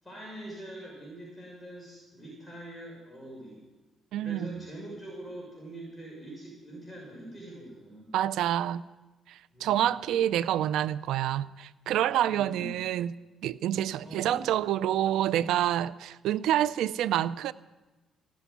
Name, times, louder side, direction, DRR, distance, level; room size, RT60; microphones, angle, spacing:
voice 1, 0.0-3.6 4.2-8.1 9.5-9.9 12.3-12.8 14.0-14.4, right 1 dB, 10° left, 6.1 m, -43 dB
voice 2, 4.1-4.6 8.1-8.8 9.3-13.1 13.4-17.5, right 12 dB, 85° right, 0.5 m, -27 dB
16.0 x 8.4 x 9.5 m
cardioid pair, 90°, 0 cm